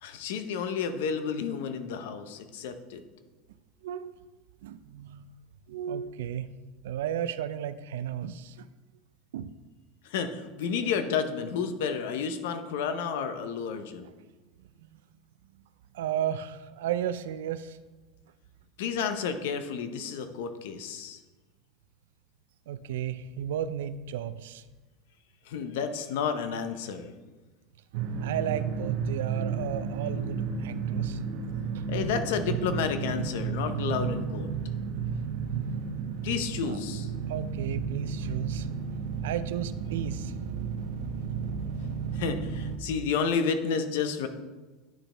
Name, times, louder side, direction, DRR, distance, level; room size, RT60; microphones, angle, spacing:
voice 1, 0.0-3.0 10.1-14.1 18.8-21.2 25.5-27.1 31.9-34.5 36.2-37.1 42.1-44.3, left 6 dB, 80° left, 9 dB, 0.7 m, -31 dB
voice 2, 4.6-5.3 5.7-6.5 6.8-8.7 9.3-9.5 14.0-14.1 14.8-15.0 15.9-17.8 22.7-24.6 28.2-31.2 31.7-31.9 36.6-36.8 37.3-38.7 39.2-40.3, right 10 dB, 85° right, 14 dB, 0.4 m, -34 dB
sound 1, 27.9-42.8, right 6 dB, 70° right, 0.8 m, -33 dB
10.5 x 4.3 x 3.3 m, 1.2 s
supercardioid pair, 115°, 0 cm